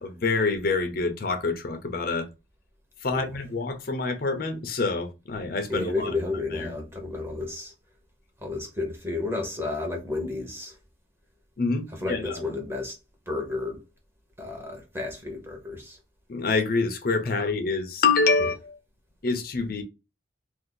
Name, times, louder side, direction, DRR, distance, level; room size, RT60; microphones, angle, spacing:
voice 1, 0.0-2.3 3.0-6.1 6.5-6.7 11.6-12.4 16.3-18.8 19.2-19.8, left 4 dB, 50° left, 0.5 m, -26 dB
voice 2, 5.7-7.7 8.4-10.8 12.0-13.0 13.3-13.8 14.4-16.0, left 3 dB, 15° right, 0.9 m, -32 dB
2.6 x 2.5 x 3.8 m
head